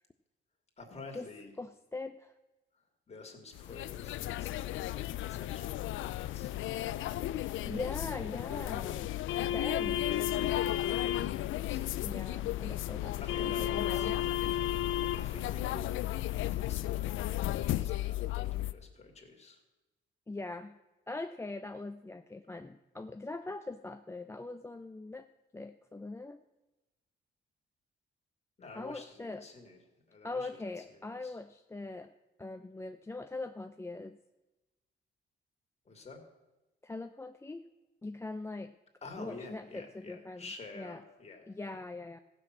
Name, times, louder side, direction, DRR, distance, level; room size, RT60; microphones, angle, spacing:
voice 1, 0.8-1.6 3.1-8.0 8.3-8.4 11.3-12.1 13.2-14.1 15.2-15.9 16.1-19.6 28.6-29.8 30.1-31.4 35.9-36.2 39.0-41.4 41.8-41.9, left 3 dB, 35° left, 3 dB, 2.6 m, -50 dB
voice 2, 1.6-2.3 7.6-9.2 9.5-10.1 12.0-14.2 20.3-20.8 21.1-25.3 25.5-26.4 28.7-29.5 30.2-32.1 32.4-34.2 36.8-37.7 38.0-38.7 39.2-40.5 40.7-41.0 41.5-42.2, left 2 dB, 15° left, 7 dB, 0.5 m, -41 dB
sound 1, 3.5-18.7, left 13 dB, 80° left, 0.5 m, -33 dB
14.5 x 6.2 x 7.5 m, 1.1 s
cardioid pair, 90°, 20 cm